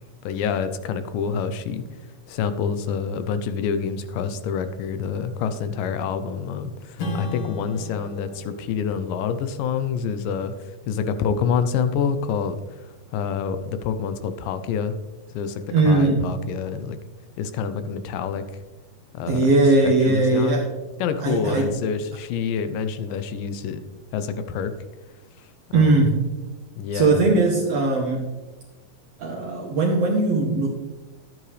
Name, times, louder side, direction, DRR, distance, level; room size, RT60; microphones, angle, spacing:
voice 1, 0.2-1.8 2.3-15.0 15.3-17.0 17.4-18.4 19.1-19.6 19.8-20.6 21.0-23.8 24.1-24.7 25.4-26.0 26.8-27.3, left 6 dB, 80° left, 10 dB, 2.2 m, -27 dB
Strum, 7.0-11.9, left 2 dB, 55° left, 1.7 m, -37 dB
voice 2, 15.7-16.3 19.3-20.7 21.2-21.8 25.7-26.3 26.9-28.3 29.2-30.7, right 3 dB, 70° right, 0 dB, 1.6 m, -19 dB
11.5 x 8.7 x 3.2 m, 1.2 s
omnidirectional pair, 3.9 m